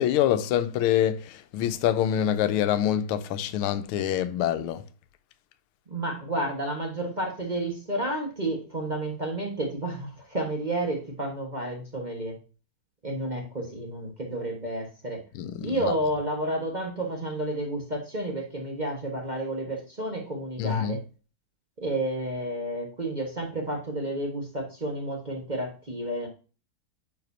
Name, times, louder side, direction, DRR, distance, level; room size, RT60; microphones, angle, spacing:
voice 1, 0.0-4.8 15.3-15.9 20.6-21.0, left 10 dB, 90° left, 1.5 m, -25 dB
voice 2, 5.9-12.4 13.0-15.2 15.6-21.0 21.8-26.3, right 1 dB, 25° right, 1.2 m, -31 dB
9.0 x 5.0 x 2.7 m
omnidirectional pair, 2.3 m